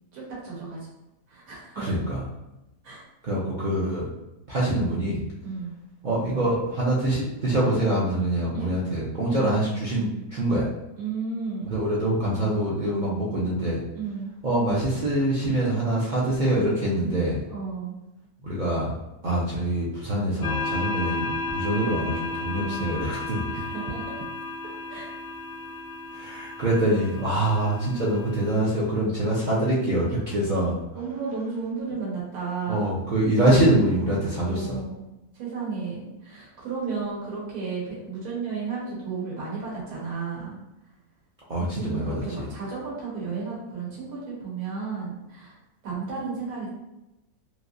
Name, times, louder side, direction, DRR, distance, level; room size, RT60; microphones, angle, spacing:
voice 1, 0.1-0.9 1.3-2.0 2.8-3.0 5.4-5.7 8.5-8.7 9.3-9.8 11.0-11.8 13.9-14.3 17.5-18.0 22.5-22.9 23.5-24.2 24.9-25.1 30.9-33.0 34.4-35.0 35.3-40.6 41.6-45.5 45.8-46.7, right 5 dB, 85° right, -6 dB, 1.6 m, -33 dB
voice 2, 1.8-2.2 3.2-4.1 4.5-5.2 6.0-10.7 11.7-13.8 14.4-17.4 18.4-18.9 19.2-23.5 26.1-30.7 32.7-34.8 41.5-42.5, right 1 dB, 60° right, -6 dB, 0.4 m, -25 dB
sound 1, 20.4-28.6, left 3 dB, 80° left, 0.5 m, -33 dB
3.2 x 2.8 x 2.6 m, 0.93 s
omnidirectional pair, 1.6 m